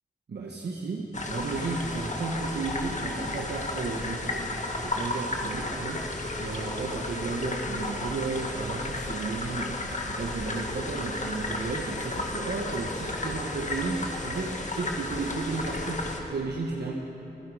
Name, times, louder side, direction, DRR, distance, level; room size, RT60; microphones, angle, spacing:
voice 1, 0.3-6.1 6.4-16.9, right 3 dB, 75° right, 0 dB, 1.2 m, -33 dB
sound 1, 1.1-16.2, left 2 dB, 45° left, 1.6 m, -33 dB
27.0 x 10.5 x 4.9 m, 2.9 s
wide cardioid pair, 75°, 17 cm